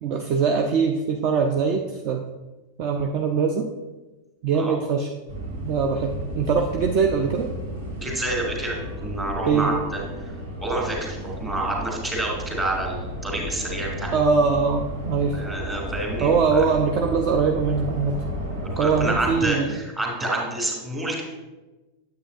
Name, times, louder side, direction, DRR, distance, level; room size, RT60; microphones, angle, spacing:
voice 1, 0.0-2.3 2.8-3.7 4.4-5.1 5.6-7.5 9.5-9.7 14.1-15.4 16.2-18.2 18.8-19.8, right 5 dB, 40° right, 4 dB, 0.5 m, -22 dB
sound 1, 5.3-19.3, equal, 70° right, 1.8 m, -33 dB
voice 2, 8.0-10.0 10.6-14.1 15.3-16.6 18.8-21.2, right 1 dB, 15° right, -1 dB, 2.3 m, -28 dB
8.8 x 7.8 x 2.4 m, 1.1 s
figure-of-eight pair, 90°, 0 cm